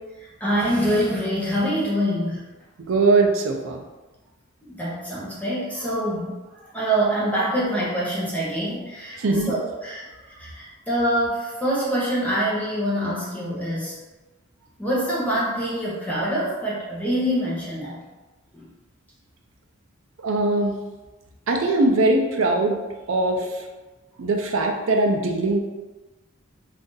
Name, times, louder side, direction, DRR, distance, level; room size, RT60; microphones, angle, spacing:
voice 1, 0.4-2.4 4.6-6.3 6.7-14.0 14.8-18.0 18.5-18.6, equal, 10° left, -7 dB, 0.8 m, -25 dB
voice 2, 2.8-3.8 9.2-9.5 20.2-20.7 21.5-22.8 23.1-23.6 24.2-25.6, right 2 dB, 70° right, 2 dB, 0.5 m, -21 dB
2.6 x 2.5 x 3.7 m, 1.2 s
head